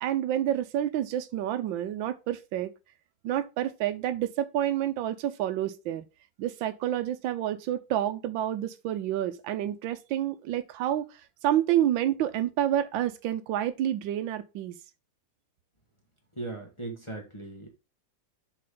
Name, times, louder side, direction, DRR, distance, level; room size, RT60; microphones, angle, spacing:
voice 1, 0.0-2.7 3.2-6.0 6.4-11.0 11.4-14.7, right 11 dB, 85° right, 1.4 m, -28 dB
voice 2, 16.4-17.7, right 2 dB, 15° left, 1.5 m, -38 dB
7.6 x 5.7 x 3.8 m
omnidirectional pair, 2.0 m